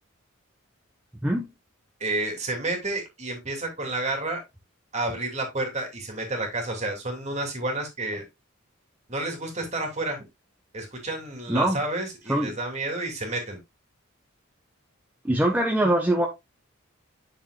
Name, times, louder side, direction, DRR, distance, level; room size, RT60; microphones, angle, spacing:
voice 1, 2.0-4.4 4.9-8.2 9.1-10.2 10.7-13.6, right 2 dB, 30° right, 2.6 m, -30 dB
voice 2, 11.5-11.8 12.3-12.6 15.2-16.3, right 1 dB, 10° right, 1.0 m, -23 dB
9.3 x 6.6 x 2.2 m
head